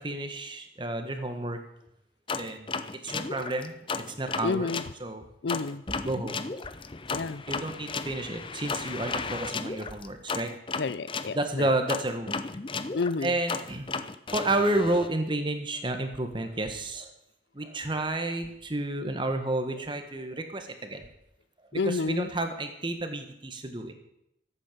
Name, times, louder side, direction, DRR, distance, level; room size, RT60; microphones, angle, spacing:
voice 1, 0.0-1.6 2.4-2.7 3.0-4.7 5.0-5.2 6.0-6.4 7.5-10.5 11.3-12.4 13.2-13.9 14.3-17.1 17.5-21.1 21.7-23.9, right 2 dB, 25° right, 6 dB, 1.5 m, -31 dB
sound 1, 2.3-4.9 5.5-11.3 11.9-15.1, left 4 dB, 30° left, 0.6 m, -34 dB
voice 2, 4.4-4.8 5.4-5.8 7.1-7.4 10.8-11.7 12.9-13.3 21.7-22.3, left 4 dB, 75° left, 17 dB, 0.5 m, -30 dB
14.5 x 8.8 x 6.8 m, 0.80 s
head